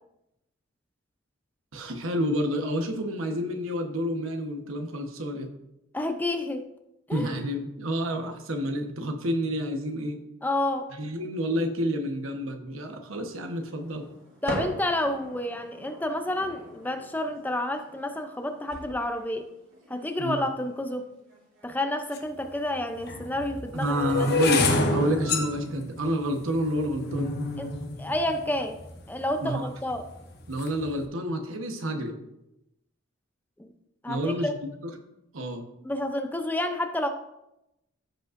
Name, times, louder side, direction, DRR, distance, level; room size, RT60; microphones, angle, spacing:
voice 1, 1.7-5.5 7.1-10.2 10.9-14.1 20.2-20.4 23.7-27.4 29.4-29.7 30.5-32.1 34.1-34.5 34.8-34.9 35.3-35.6, equal, 90° right, 4 dB, 1.1 m, -29 dB
voice 2, 5.9-6.7 7.1-7.3 10.4-10.9 14.4-19.4 19.9-21.1 21.6-24.3 27.6-27.7 28.0-28.8 29.1-30.1 33.6-33.7 34.0-34.5 35.8-37.1, left 1 dB, 10° left, 7 dB, 0.5 m, -30 dB
sound 1, 13.3-22.2, equal, 70° right, 2.8 m, -42 dB
sound 2, 22.1-22.2 23.0-29.1 29.8-30.2 30.4-30.8, left 3 dB, 55° left, 1.0 m, -28 dB
15.0 x 5.3 x 2.5 m, 0.88 s
head